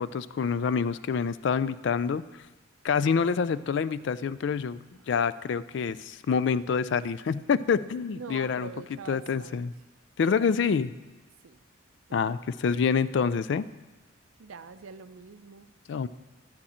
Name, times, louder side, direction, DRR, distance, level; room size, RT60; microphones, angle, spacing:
voice 1, 0.0-2.2 2.8-4.8 5.1-8.7 9.1-9.7 10.2-10.9 12.1-13.7 15.9-16.1, left 6 dB, 60° left, 16 dB, 0.3 m, -27 dB
voice 2, 8.2-9.7 11.4-11.6 12.1-12.4 14.4-15.7, right 5 dB, 85° right, 12 dB, 0.5 m, -45 dB
12.0 x 9.8 x 4.3 m, 1.2 s
head